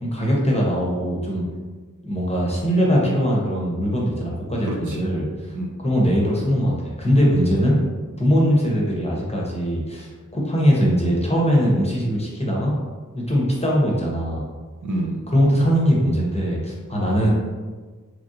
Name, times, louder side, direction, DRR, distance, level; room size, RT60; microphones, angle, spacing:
voice 1, 0.0-1.4 2.0-5.3 5.8-7.7 8.2-12.7 13.2-14.4 15.3-17.3, equal, 20° left, -4 dB, 0.8 m, -21 dB
voice 2, 4.6-5.1 5.5-5.7 7.5-7.9 14.8-15.3 17.0-17.3, right 2 dB, 65° right, 0 dB, 0.5 m, -29 dB
3.1 x 2.5 x 2.6 m, 1.4 s
wide cardioid pair, 55°, 33 cm